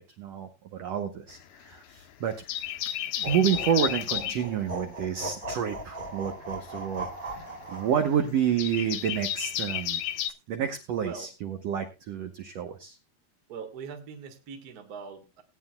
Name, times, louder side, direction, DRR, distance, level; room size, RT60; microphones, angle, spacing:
voice 1, 0.2-2.4 3.2-10.0 10.5-13.0, right 8 dB, 75° right, 5 dB, 1.5 m, -29 dB
sound 1, 1.3-2.0 2.3-4.5 6.1-10.3, left 11 dB, 75° left, 1.8 m, -32 dB
sound 2, 3.2-8.0, right 1 dB, 30° right, 1.0 m, -38 dB
voice 2, 10.9-11.3 13.5-15.4, right 5 dB, 50° right, 6 dB, 1.1 m, -41 dB
19.5 x 9.4 x 2.3 m, 0.25 s
omnidirectional pair, 4.1 m